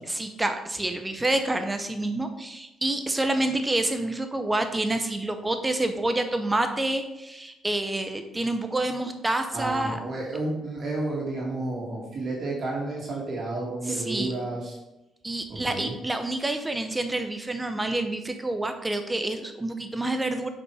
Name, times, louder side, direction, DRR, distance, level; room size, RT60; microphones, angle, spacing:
voice 1, 0.1-10.0 13.9-14.3 15.2-20.5, right 2 dB, 15° right, 7 dB, 0.8 m, -28 dB
voice 2, 9.5-14.8 15.5-15.9, right 2 dB, 50° right, -3 dB, 2.3 m, -31 dB
7.8 x 5.3 x 4.9 m, 0.96 s
cardioid pair, 90°, 0 cm